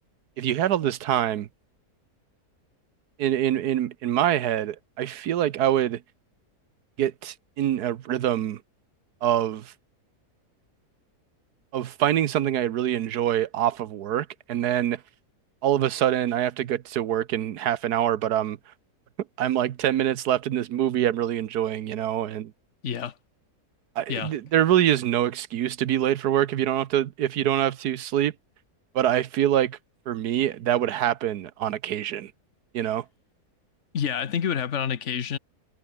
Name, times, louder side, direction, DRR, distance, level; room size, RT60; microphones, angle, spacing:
voice 1, 0.4-1.5 3.2-6.0 7.0-8.6 9.2-9.7 11.7-15.0 15.6-18.6 19.4-22.5 24.0-28.3 28.9-29.8 30.1-32.3 32.7-33.0, right 11 dB, 85° right, 1.4 m, -25 dB
voice 2, 22.8-23.2 24.1-24.3 33.9-35.4, left 8 dB, 50° left, 1.4 m, -28 dB
omnidirectional pair, 1.6 m